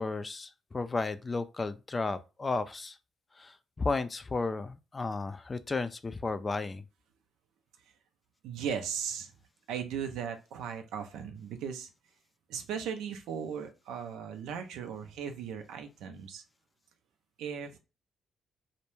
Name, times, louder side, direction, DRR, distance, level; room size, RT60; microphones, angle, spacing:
voice 1, 0.0-3.0 3.3-6.9, left 3 dB, 35° left, 0.3 m, -33 dB
voice 2, 8.4-9.3 9.7-11.9 12.5-16.4 17.4-17.8, right 7 dB, 75° right, 0.4 m, -37 dB
2.2 x 2.1 x 3.0 m
hypercardioid pair, 50°, 0 cm